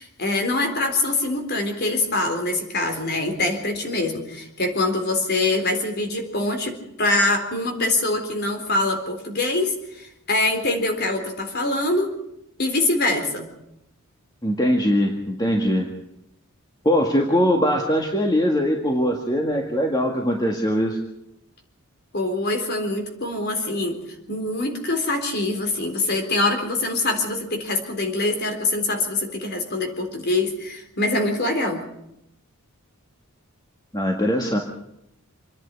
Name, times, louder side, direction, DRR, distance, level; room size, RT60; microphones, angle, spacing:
voice 1, 0.0-12.1 12.6-13.5 22.1-24.0 24.3-31.8, left 2 dB, 45° left, 5 dB, 3.9 m, -24 dB
voice 2, 14.4-15.9 16.8-21.0 33.9-34.6, equal, 20° left, 1 dB, 1.9 m, -21 dB
27.0 x 10.5 x 9.8 m, 0.82 s
head